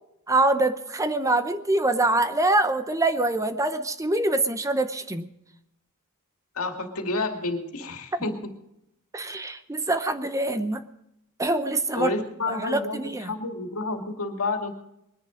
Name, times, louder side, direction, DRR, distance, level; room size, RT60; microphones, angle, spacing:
voice 1, 0.3-5.3 9.1-10.8 11.4-12.1 12.5-13.3, right 2 dB, 15° right, 10 dB, 0.8 m, -24 dB
voice 2, 6.5-8.4 11.9-14.7, left 3 dB, 75° left, 4 dB, 2.4 m, -30 dB
21.5 x 10.5 x 5.1 m, 0.83 s
head